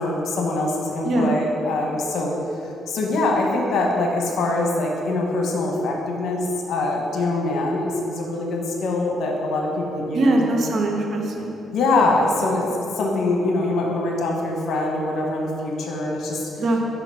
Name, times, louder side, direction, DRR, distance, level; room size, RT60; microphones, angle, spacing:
voice 1, 0.0-2.3 2.6-10.7 11.7-16.5, left 2 dB, 75° left, 0 dB, 1.1 m, -23 dB
voice 2, 1.0-1.4 10.1-11.6 16.6-16.8, right 2 dB, 55° right, 2 dB, 0.9 m, -21 dB
5.8 x 4.9 x 5.5 m, 2.8 s
cardioid pair, 90°, 0 cm